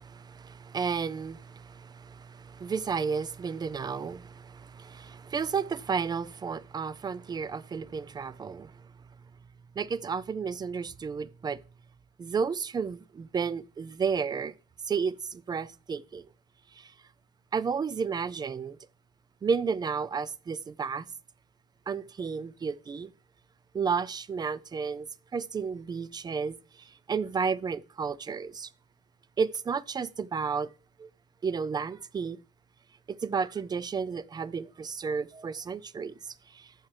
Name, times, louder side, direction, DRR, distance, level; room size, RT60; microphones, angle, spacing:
voice 1, 0.0-8.9 9.8-11.6 12.2-14.5 14.8-16.3 16.7-16.9 17.5-18.8 19.4-21.1 21.9-23.1 23.7-28.7 29.4-30.7 31.0-31.1 31.4-32.4 33.1-36.7, right 5 dB, 25° right, 0.4 m, -32 dB
14.5 x 6.1 x 3.2 m
cardioid pair, 110°, 17 cm